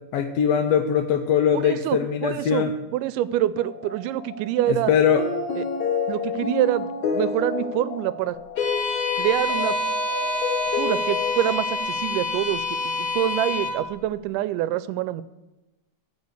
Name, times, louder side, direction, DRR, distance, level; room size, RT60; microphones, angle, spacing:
voice 1, 0.1-2.7 4.7-5.2, left 8 dB, 85° left, 6 dB, 1.4 m, -21 dB
voice 2, 1.5-2.7 2.9-4.9 5.6-5.7 6.1-8.4 9.2-9.8 10.7-15.2, right 13 dB, 85° right, 16 dB, 2.1 m, -26 dB
sound 1, 3.6-11.8, left 5 dB, 65° left, 2.5 m, -29 dB
Bowed string instrument, 8.6-13.8, left 1 dB, 40° left, 1.4 m, -27 dB
14.0 x 4.7 x 8.0 m, 1.0 s
omnidirectional pair, 3.6 m